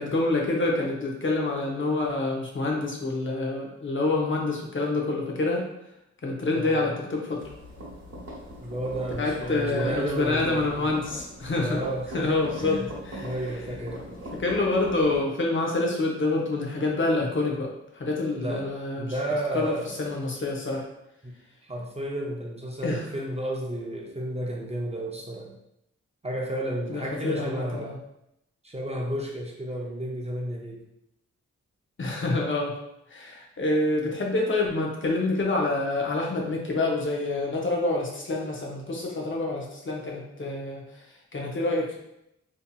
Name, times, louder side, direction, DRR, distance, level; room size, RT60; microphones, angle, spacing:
voice 1, 0.0-5.7 6.2-7.4 9.2-11.8 12.1-13.3 14.3-19.1 19.5-20.8 22.8-23.0 26.9-27.9 32.0-32.8 33.1-41.0 41.3-42.0, left 2 dB, 45° left, -1 dB, 0.6 m, -27 dB
voice 2, 6.5-6.9 8.6-10.9 11.6-12.9 13.1-14.0 18.4-18.7 19.0-20.0 21.2-21.3 21.6-25.5 26.2-28.0 28.6-30.8, right 1 dB, 20° right, -2 dB, 0.5 m, -32 dB
sound 1, 7.4-15.2, equal, 60° right, 0.9 m, -41 dB
2.7 x 2.6 x 2.2 m, 0.82 s
cardioid pair, 65°, 29 cm